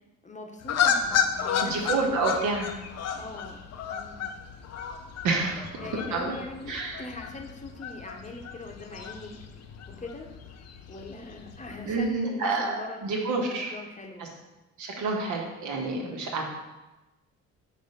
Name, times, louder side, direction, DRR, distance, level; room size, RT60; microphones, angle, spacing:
voice 1, 0.2-2.3 3.1-3.6 3.8-4.3 5.8-9.3 9.9-10.3 10.9-13.1 13.7-14.4 15.0-15.2 15.9-16.1, left 2 dB, 25° left, 2 dB, 0.9 m, -41 dB
sound 1, 0.6-12.1, left 7 dB, 55° left, 0.7 m, -32 dB
voice 2, 1.6-2.7 5.2-5.6 6.1-6.3 6.7-7.0 11.8-12.7 13.0-13.7 14.2-14.3 14.8-16.4, right 3 dB, 75° right, 0 dB, 1.3 m, -28 dB
5.2 x 3.4 x 5.5 m, 1.0 s
cardioid pair, 90°, 30 cm